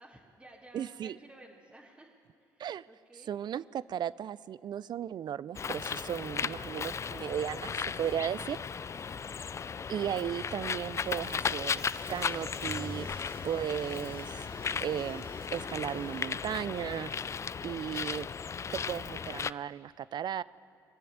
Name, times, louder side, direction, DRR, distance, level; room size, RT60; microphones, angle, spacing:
voice 1, 0.0-2.1 2.4-3.4 9.0-9.4, right 1 dB, 10° right, -3 dB, 1.7 m, -55 dB
voice 2, 0.7-1.2 2.6-2.9 3.3-8.6 9.9-11.8 12.1-13.1 13.4-14.4 14.8-15.3 15.5-17.1 17.6-18.3 18.7-20.4, right 9 dB, 50° right, 20 dB, 0.4 m, -35 dB
Bird, 5.5-19.5, left 6 dB, 30° left, 0.3 m, -36 dB
sound 1, 10.9-16.3, right 7 dB, 75° right, 1.0 m, -55 dB
sound 2, 12.6-14.8, left 1 dB, 50° left, 2.4 m, -46 dB
20.5 x 7.7 x 8.0 m, 2.6 s
hypercardioid pair, 60°, 9 cm